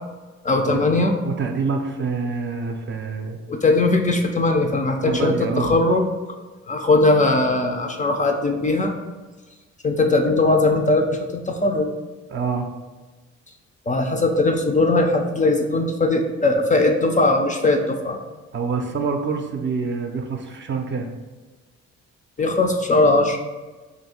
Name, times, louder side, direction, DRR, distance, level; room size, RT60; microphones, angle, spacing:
voice 1, 0.4-1.1 3.5-6.1 6.7-8.9 9.8-11.9 13.9-18.2 22.4-23.4, left 2 dB, 25° left, 3 dB, 0.4 m, -19 dB
voice 2, 1.2-3.4 5.0-5.8 12.3-12.7 18.5-21.1, right 5 dB, 40° right, 4 dB, 0.5 m, -26 dB
3.1 x 2.6 x 4.2 m, 1.2 s
cardioid pair, 90°, 30 cm